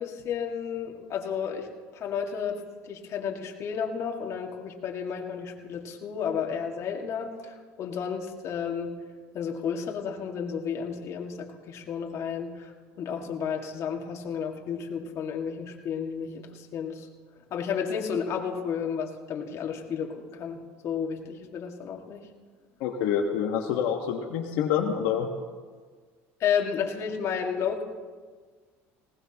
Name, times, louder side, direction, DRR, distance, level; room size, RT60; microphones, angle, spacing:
voice 1, 0.0-1.7 1.9-8.9 9.3-12.7 13.0-17.1 17.5-20.6 20.8-22.3 26.4-27.8, left 7 dB, 50° left, 1 dB, 2.0 m, -32 dB
voice 2, 22.8-25.3, left 8 dB, 80° left, 0 dB, 1.4 m, -27 dB
20.0 x 18.5 x 2.9 m, 1.5 s
cardioid pair, 120°, 6 cm